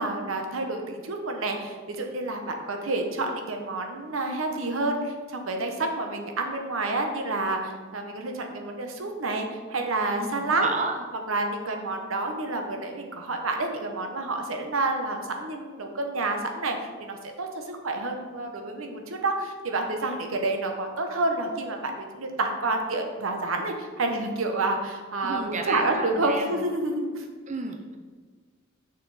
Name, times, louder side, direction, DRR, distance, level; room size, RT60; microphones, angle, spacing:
voice 1, 0.0-10.7 11.3-27.3, right 2 dB, 85° right, 4 dB, 1.0 m, -29 dB
voice 2, 10.2-11.0 25.2-26.5 27.5-28.0, right 3 dB, 35° right, 4 dB, 0.6 m, -32 dB
6.8 x 6.3 x 4.1 m, 1.5 s
head